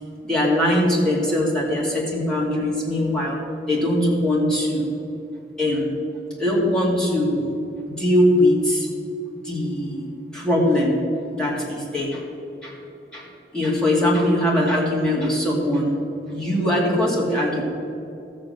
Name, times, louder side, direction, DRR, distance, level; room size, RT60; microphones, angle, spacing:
voice 1, 0.2-3.4 3.7-4.9 5.6-6.0 6.4-7.6 7.9-8.9 9.4-11.0 11.4-12.2 12.6-12.8 13.1-13.3 13.5-16.0 16.3-17.6, left 1 dB, 5° left, -4 dB, 2.2 m, -21 dB
13.5 x 7.5 x 6.5 m, 2.8 s
head